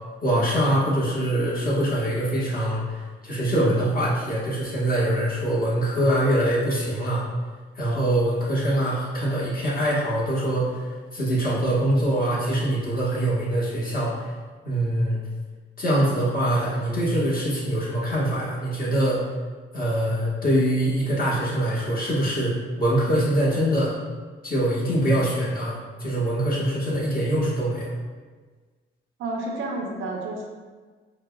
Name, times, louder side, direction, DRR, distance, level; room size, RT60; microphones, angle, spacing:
voice 1, 0.2-7.2 7.7-14.3 14.6-15.2 15.8-19.3 19.7-24.0 24.4-27.9, right 1 dB, 45° left, -7 dB, 1.3 m, -24 dB
voice 2, 29.2-30.4, right 2 dB, 75° right, -1 dB, 0.7 m, -30 dB
5.0 x 2.3 x 2.2 m, 1.4 s
cardioid pair, 90°, 20 cm